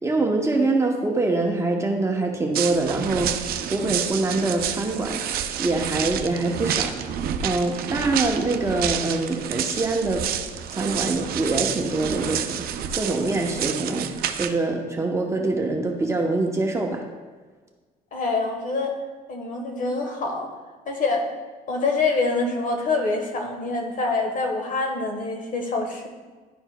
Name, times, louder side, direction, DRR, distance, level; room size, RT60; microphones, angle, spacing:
voice 1, 0.0-5.2 5.6-7.2 7.4-10.3 10.7-12.6 12.9-14.1 14.4-17.0, right 2 dB, 15° right, 1 dB, 0.8 m, -24 dB
sound 1, 2.5-14.5, right 9 dB, 65° right, 0.4 m, -29 dB
voice 2, 18.1-19.0 19.3-20.5 20.9-21.3 21.7-26.1, left 3 dB, 50° left, 2 dB, 1.2 m, -25 dB
11.0 x 4.4 x 2.2 m, 1.4 s
cardioid pair, 110°, 17 cm